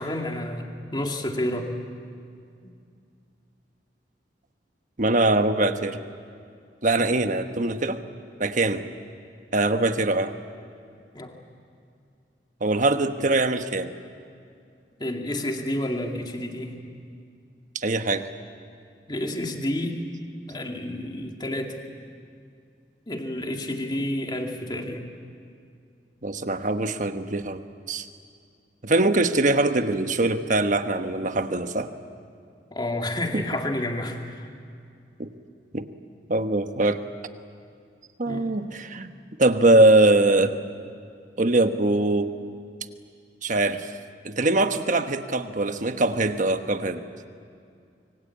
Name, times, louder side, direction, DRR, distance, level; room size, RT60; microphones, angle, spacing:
voice 1, 0.0-1.7 7.0-7.2 11.1-11.3 15.0-16.8 19.1-20.0 20.5-21.8 23.1-25.1 31.2-31.3 32.7-34.5 38.3-38.6, left 1 dB, 25° left, 2 dB, 2.3 m, -30 dB
voice 2, 5.0-6.0 6.8-8.0 8.4-8.9 9.5-10.3 12.6-13.9 17.7-18.3 26.2-27.6 27.9-28.1 28.8-31.9 33.3-33.4 35.2-35.3 35.7-35.9 36.3-37.0 38.2-39.1 39.4-40.6 41.4-42.3 43.4-43.9 44.2-47.0, right 2 dB, 45° right, 8 dB, 1.2 m, -22 dB
26.0 x 24.0 x 8.6 m, 2.3 s
head